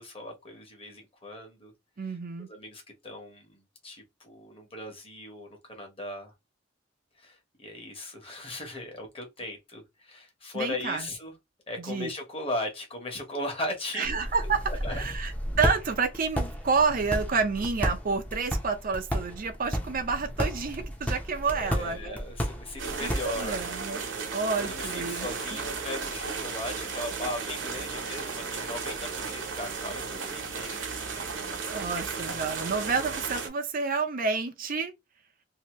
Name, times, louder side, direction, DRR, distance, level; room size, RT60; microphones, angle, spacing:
voice 1, 0.0-1.7 2.0-6.3 7.2-11.3 11.7-14.1 14.4-15.0 21.5-23.6 24.6-31.6, left 1 dB, 30° left, 1.2 m, -38 dB
voice 2, 2.0-2.5 10.5-11.0 11.8-12.1 13.9-15.3 15.6-22.2 23.0-24.0 24.3-25.3 31.7-34.9, right 4 dB, 45° right, 0.6 m, -29 dB
sound 1, 14.0-23.6, equal, 10° left, 0.7 m, -33 dB
sound 2, 22.8-33.5, right 5 dB, 70° right, 1.0 m, -35 dB
2.8 x 2.7 x 3.0 m
head